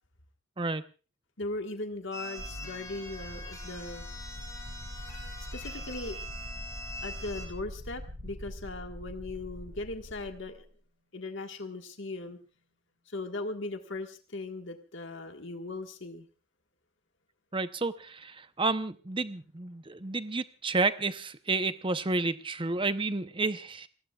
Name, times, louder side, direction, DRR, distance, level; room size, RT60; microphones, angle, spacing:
voice 1, 1.4-4.1 5.5-6.2 7.0-10.7 11.1-12.4 13.1-16.3, left 2 dB, 60° left, 5 dB, 1.7 m, -38 dB
sound 1, 2.1-7.5, left 1 dB, 15° left, 4.0 m, -43 dB
sound 2, 2.4-10.6, left 1 dB, 90° right, 5.7 m, -43 dB
voice 2, 17.5-23.9, right 3 dB, 25° right, 11 dB, 0.8 m, -31 dB
29.5 x 20.0 x 2.4 m, 0.35 s
head